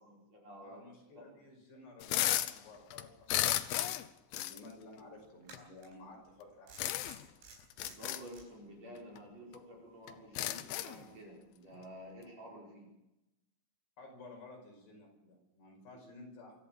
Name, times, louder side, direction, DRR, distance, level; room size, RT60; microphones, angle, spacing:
voice 1, 0.0-0.8 1.2-1.3 7.7-12.9, equal, 35° right, -1 dB, 5.8 m, -51 dB
voice 2, 0.6-4.0 4.3-7.2 14.0-16.6, left 2 dB, 60° left, 0 dB, 7.7 m, -54 dB
sound 1, 2.0-2.6 2.9-4.1 4.3-4.6 5.5-5.6 6.8-7.3 7.7-8.2 9.2-9.3 9.5-9.6 10.1-11.0, left 13 dB, 85° left, 2.2 m, -33 dB
sound 2, 5.4-5.9 6.7-8.4, right 5 dB, 70° right, 6.7 m, -55 dB
25.5 x 14.0 x 7.7 m, 0.93 s
omnidirectional pair, 5.5 m